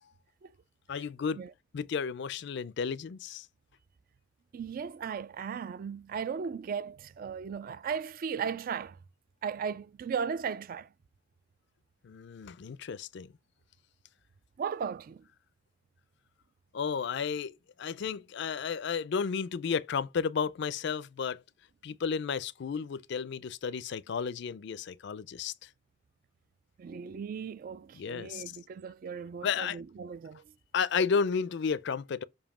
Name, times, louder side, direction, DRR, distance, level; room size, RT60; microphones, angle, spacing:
voice 1, 0.9-1.4 1.7-3.5 12.0-13.3 16.7-21.4 21.8-25.7 27.9-28.4 29.4-29.8 30.7-32.2, left 6 dB, 65° left, 0.4 m, -32 dB
voice 2, 4.5-9.0 9.4-10.9 14.6-15.2 26.8-30.4, right 6 dB, 45° right, 0.3 m, -36 dB
7.1 x 2.7 x 4.8 m
head